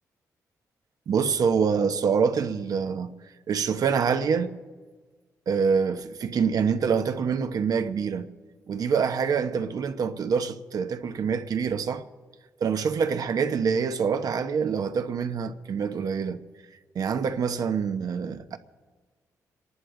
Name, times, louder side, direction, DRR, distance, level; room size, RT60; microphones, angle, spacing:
voice 1, 1.1-3.1 3.5-4.5 5.5-8.3 8.7-12.0 12.6-16.4 16.9-18.6, right 6 dB, 65° right, 1.0 m, -25 dB
27.5 x 11.5 x 3.8 m
cardioid pair, 65°, 7 cm